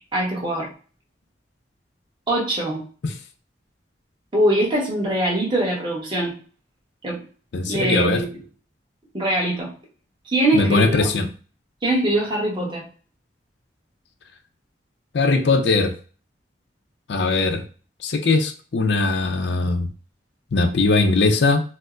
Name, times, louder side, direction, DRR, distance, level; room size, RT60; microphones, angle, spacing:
voice 1, 0.1-0.7 2.3-2.8 4.3-6.3 7.0-7.2 7.7-8.3 9.1-9.7 10.3-11.1 11.8-12.8, right 1 dB, 25° right, -3 dB, 1.0 m, -22 dB
voice 2, 7.5-8.2 10.5-11.3 15.1-15.9 17.1-17.6 18.0-19.9 20.5-21.6, left 3 dB, 75° left, 7 dB, 0.5 m, -20 dB
4.3 x 2.0 x 2.4 m, 0.39 s
head